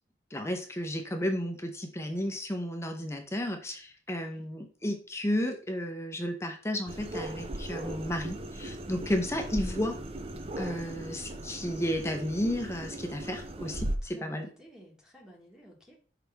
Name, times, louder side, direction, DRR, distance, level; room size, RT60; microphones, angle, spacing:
voice 1, 0.3-10.0 10.6-14.5, equal, 15° left, 5 dB, 0.7 m, -33 dB
voice 2, 4.1-4.5 8.9-9.2 11.2-11.9 14.0-16.0, equal, 5° right, -1 dB, 1.4 m, -54 dB
sound 1, 6.9-14.0, right 1 dB, 30° right, 0.6 m, -38 dB
6.3 x 4.9 x 3.4 m, 0.40 s
head